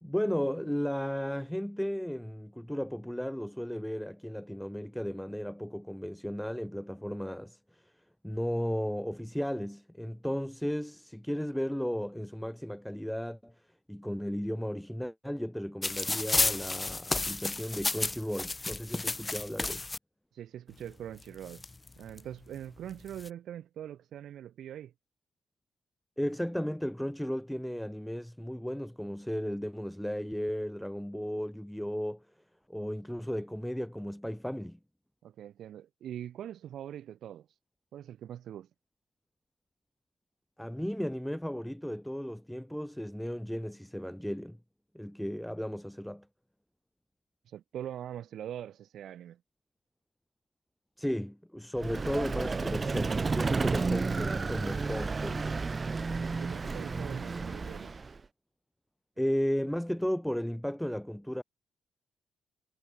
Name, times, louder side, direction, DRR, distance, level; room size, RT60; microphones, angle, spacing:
voice 1, 0.0-7.9 8.2-13.5 13.9-19.9 26.2-32.2 32.7-34.8 40.6-44.6 44.9-46.3 51.0-55.6 59.2-61.4, equal, ahead, 1.3 m, -35 dB
sound 1, 15.8-20.0 20.9-21.0 21.2-22.2 22.9-23.3, left 3 dB, 20° left, 0.5 m, -32 dB
voice 2, 20.3-21.6 22.0-24.9 35.2-37.6 37.9-38.7 47.5-49.4 56.2-58.2, right 10 dB, 75° right, 2.1 m, -43 dB
Vehicle, 51.8-58.2, right 4 dB, 30° right, 1.0 m, -32 dB
cardioid pair, 90°, 0 cm